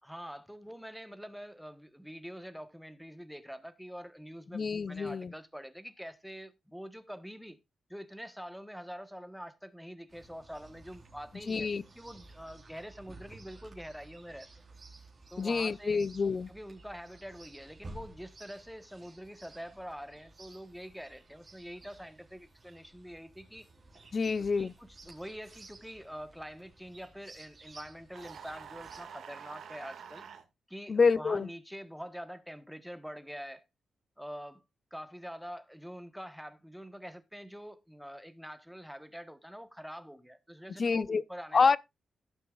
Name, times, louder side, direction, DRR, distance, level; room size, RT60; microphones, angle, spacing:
voice 1, 0.0-7.6 7.9-14.6 15.3-16.0 16.5-23.7 24.2-30.2 30.7-33.6 34.2-34.6 34.9-41.7, equal, ahead, 1.1 m, -45 dB
voice 2, 4.5-5.3 11.5-11.8 15.4-16.5 24.1-24.7 30.9-31.5 40.8-41.2 41.5-41.8, left 5 dB, 40° left, 0.5 m, -27 dB
Chirp tweet, 10.1-29.0, right 2 dB, 35° right, 3.8 m, -54 dB
sound 1, 28.1-30.4, right 7 dB, 75° right, 1.8 m, -47 dB
17.0 x 7.0 x 2.3 m
wide cardioid pair, 120°, 0 cm